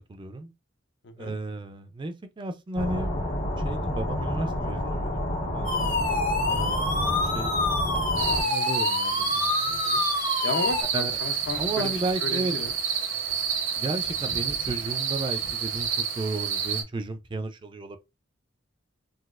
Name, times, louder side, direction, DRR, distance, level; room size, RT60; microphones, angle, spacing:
voice 1, 0.1-0.5 1.2-3.2 3.6-5.3 5.5-6.2 6.5-7.5 7.9-9.8 10.9-11.1 11.5-12.6 13.8-18.0, right 2 dB, 25° right, 0.4 m, -34 dB
sound 1, 2.7-8.4, left 1 dB, 85° left, 1.7 m, -29 dB
sound 2, 5.6-10.8, left 3 dB, 45° left, 0.9 m, -27 dB
sound 3, 8.2-16.8, right 7 dB, 80° right, 0.9 m, -29 dB
voice 2, 9.7-11.9 12.2-12.7, left 3 dB, 65° left, 0.6 m, -34 dB
3.9 x 2.3 x 2.4 m
head